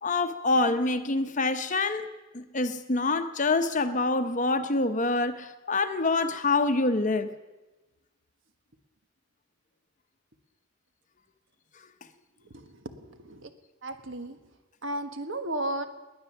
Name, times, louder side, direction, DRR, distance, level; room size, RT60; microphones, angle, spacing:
voice 1, 0.0-2.1 2.3-7.3, left 3 dB, 35° left, 10 dB, 0.8 m, -26 dB
voice 2, 12.5-13.5 13.8-14.4 14.8-15.9, right 1 dB, 60° right, 8 dB, 1.4 m, -34 dB
20.5 x 9.7 x 7.1 m, 1.1 s
head